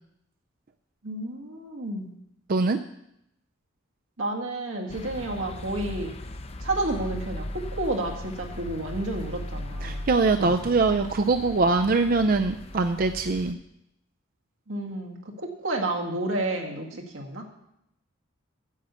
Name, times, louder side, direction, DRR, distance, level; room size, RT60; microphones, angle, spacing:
voice 1, 1.0-2.1 4.2-6.1 6.6-10.1 10.4-10.5 14.7-17.5, right 2 dB, 85° right, 2 dB, 1.9 m, -31 dB
sound 1, 4.9-13.5, left 1 dB, 30° left, 0.6 m, -38 dB
voice 2, 9.8-13.6, right 3 dB, 45° right, 7 dB, 0.4 m, -23 dB
9.3 x 7.0 x 8.1 m, 0.81 s
head